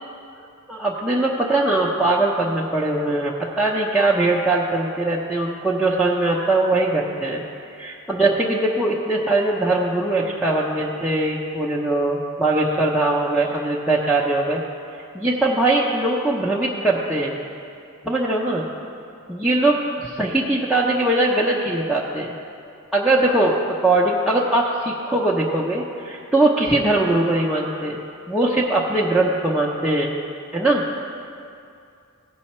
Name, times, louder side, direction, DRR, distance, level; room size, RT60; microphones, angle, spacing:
voice 1, 0.7-7.4 7.8-14.6 15.1-17.4 18.0-18.6 19.3-22.3 22.9-23.6 23.8-28.0 28.3-30.1 30.5-30.8, right 2 dB, 5° right, -7 dB, 0.6 m, -21 dB
16.0 x 5.5 x 4.3 m, 2.5 s
head